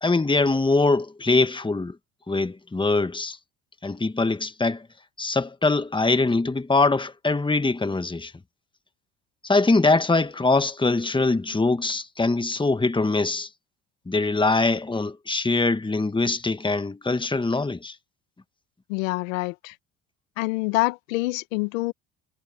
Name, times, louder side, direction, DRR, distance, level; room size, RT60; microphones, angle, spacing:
voice 1, 0.0-2.0 2.3-3.4 3.8-4.9 5.2-8.3 9.4-13.5 14.0-17.9, left 3 dB, 10° left, 1.7 m, -23 dB
voice 2, 18.9-19.7 20.4-21.9, left 23 dB, 85° left, 1.6 m, -26 dB
hypercardioid pair, 70°, 38 cm